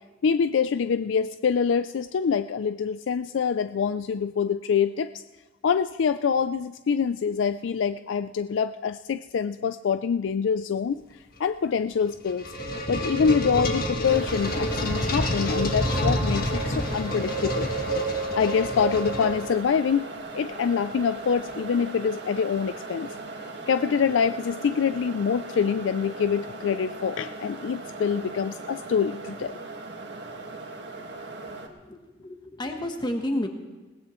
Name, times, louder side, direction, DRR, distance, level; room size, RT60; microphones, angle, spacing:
voice 1, 0.2-5.2 5.6-11.0 11.4-12.4 12.9-17.7 18.0-20.1 20.3-23.1 23.7-29.5, left 6 dB, 75° left, 12 dB, 0.4 m, -25 dB
sound 1, 12.0-19.8, equal, 50° left, 1.7 m, -28 dB
sound 2, 14.0-31.7, right 3 dB, 60° right, 1.8 m, -38 dB
voice 2, 31.8-33.5, left 1 dB, 25° left, 4 dB, 1.1 m, -30 dB
20.5 x 18.0 x 3.1 m, 1.2 s
head